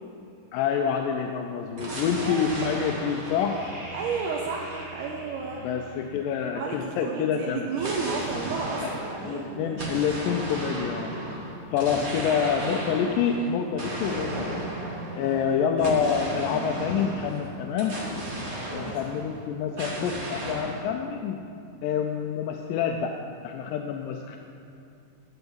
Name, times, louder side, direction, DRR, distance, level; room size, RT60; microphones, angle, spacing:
voice 1, 0.5-3.6 5.6-7.6 8.8-8.9 9.2-11.1 11.7-14.6 15.2-18.0 18.7-21.4 21.8-23.1 23.4-24.4, left 7 dB, 85° left, 4 dB, 2.2 m, -27 dB
sound 1, 1.8-6.5 7.8-19.4 19.8-20.8, right 1 dB, 50° right, 0.8 m, -35 dB
voice 2, 2.2-2.8 3.9-5.7 6.6-10.1 12.3-12.4 15.2-15.6 18.6-19.0, right 5 dB, 80° right, -1 dB, 2.2 m, -33 dB
12.5 x 4.5 x 7.9 m, 2.5 s
omnidirectional pair, 3.9 m